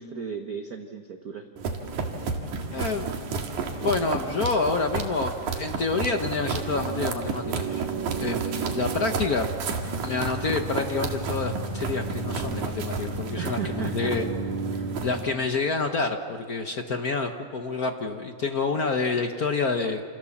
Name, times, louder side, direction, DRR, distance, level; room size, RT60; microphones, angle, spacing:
voice 1, 0.0-1.5 13.4-14.2 14.7-14.9, right 6 dB, 60° right, 5 dB, 0.9 m, -35 dB
sound 1, 1.6-15.2, right 4 dB, 80° right, 3.4 m, -31 dB
voice 2, 2.7-3.1 3.8-7.9 8.2-9.5 10.0-14.3 15.0-20.0, left 4 dB, 75° left, 5 dB, 0.8 m, -28 dB
28.5 x 28.5 x 7.3 m, 2.2 s
omnidirectional pair, 3.4 m